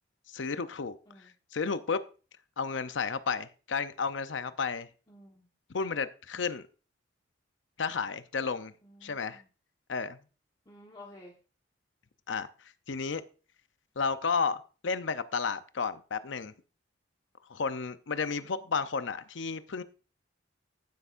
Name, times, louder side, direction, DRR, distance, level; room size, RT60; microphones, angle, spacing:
voice 1, 0.3-2.0 2.6-4.9 5.7-6.6 7.8-8.7 9.0-9.4 9.9-10.2 12.3-12.5 12.9-13.2 14.0-16.5 17.5-19.8, left 5 dB, 70° left, 0.6 m, -32 dB
voice 2, 5.1-5.5 8.8-9.5 10.7-11.3 18.2-18.7, left 1 dB, 25° left, 1.3 m, -53 dB
15.0 x 8.0 x 2.5 m
head